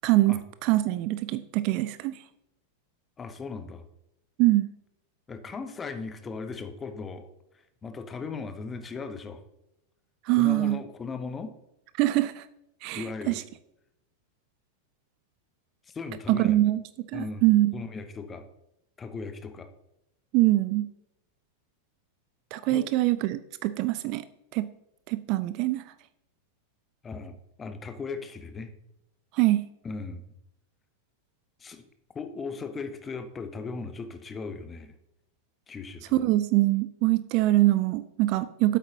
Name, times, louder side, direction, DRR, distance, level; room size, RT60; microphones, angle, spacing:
voice 1, 0.0-2.2 4.4-4.7 10.2-10.8 12.0-12.5 12.8-13.4 16.3-17.8 20.3-20.9 22.5-24.2 24.5-24.7 25.1-25.8 29.3-29.7 36.1-38.8, right 17 dB, 40° right, 15 dB, 0.3 m, -24 dB
voice 2, 3.2-3.8 5.3-7.3 7.8-9.4 10.3-11.5 12.9-13.4 15.9-16.6 17.1-17.4 17.7-18.5 19.0-19.7 22.7-22.9 27.0-28.7 29.8-30.3 31.6-31.8 32.1-35.0 35.7-36.2, left 4 dB, 20° left, 9 dB, 0.8 m, -37 dB
9.1 x 8.0 x 2.8 m, 0.84 s
figure-of-eight pair, 90°, 0 cm